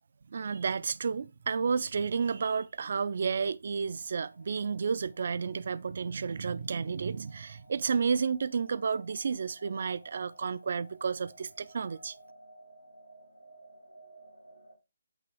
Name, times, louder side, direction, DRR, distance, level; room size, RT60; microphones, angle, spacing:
voice 1, 0.3-12.1, right 5 dB, 45° right, 0.3 m, -31 dB
sound 1, 3.9-14.8, right 1 dB, 80° left, 1.5 m, -57 dB
8.4 x 3.0 x 4.6 m
figure-of-eight pair, 145°, 0 cm